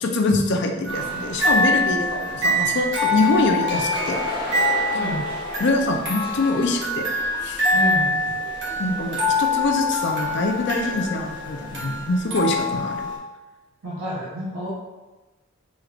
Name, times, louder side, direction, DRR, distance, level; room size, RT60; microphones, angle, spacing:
voice 1, 0.0-4.2 5.6-7.1 7.4-7.6 8.8-13.1, left 2 dB, 55° left, 3 dB, 0.5 m, -24 dB
sound 1, 0.8-13.2, left 2 dB, 50° right, 1.1 m, -25 dB
sound 2, 0.9-12.2, equal, 25° left, 0.9 m, -36 dB
voice 2, 7.7-8.4 13.8-14.7, equal, 80° right, -7 dB, 0.8 m, -29 dB
4.8 x 3.1 x 2.4 m, 1.1 s
head